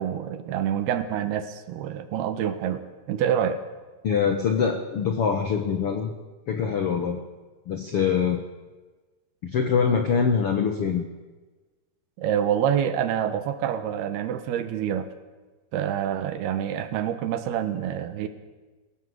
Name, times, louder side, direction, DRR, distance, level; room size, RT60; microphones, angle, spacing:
voice 1, 0.0-3.6 12.2-15.1 15.7-18.3, right 9 dB, 70° right, 10 dB, 3.0 m, -27 dB
voice 2, 4.0-6.1 6.5-7.2 7.7-8.4 9.4-11.0, left 6 dB, 80° left, 5 dB, 1.3 m, -24 dB
22.5 x 17.0 x 8.0 m, 1.3 s
omnidirectional pair, 4.9 m